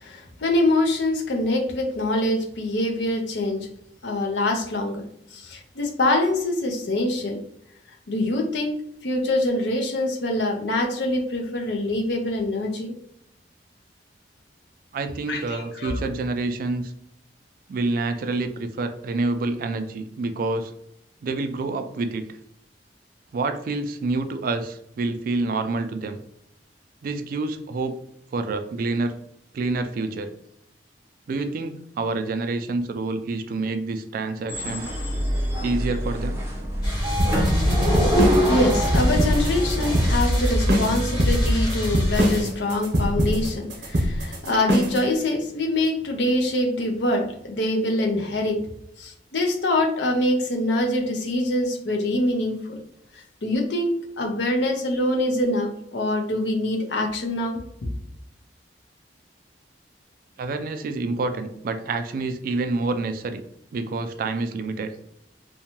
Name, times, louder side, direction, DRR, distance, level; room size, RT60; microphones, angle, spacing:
voice 1, 0.0-3.6 4.0-5.0 5.3-7.4 8.1-8.7 9.0-12.9 15.3-16.0 38.2-48.6 49.0-52.8 53.1-57.6, left 1 dB, 75° left, 2 dB, 0.6 m, -24 dB
voice 2, 14.9-16.9 17.7-20.7 21.2-22.2 23.3-26.2 27.0-27.9 28.3-29.1 29.5-30.3 31.3-34.9 35.6-36.4 60.4-63.4 63.7-64.9, right 3 dB, 55° right, 8 dB, 0.3 m, -27 dB
sound 1, 34.5-40.2, equal, 15° right, 0.6 m, -25 dB
sound 2, 36.8-42.4, equal, 20° left, 1.1 m, -24 dB
sound 3, 37.2-45.1, equal, 70° right, 0.8 m, -23 dB
2.7 x 2.2 x 2.9 m, 0.74 s
head